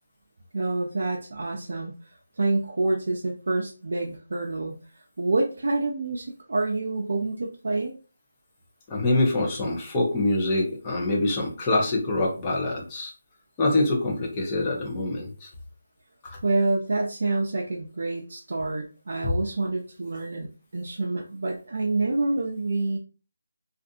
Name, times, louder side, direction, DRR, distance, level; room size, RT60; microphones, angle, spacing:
voice 1, 0.5-8.0 16.4-23.0, right 2 dB, 65° right, -1 dB, 0.5 m, -27 dB
voice 2, 8.9-13.1 13.6-15.5 16.2-16.4 19.2-19.3, left 2 dB, 20° left, -2 dB, 0.7 m, -25 dB
2.6 x 2.4 x 2.4 m, 0.35 s
figure-of-eight pair, 165°, 0 cm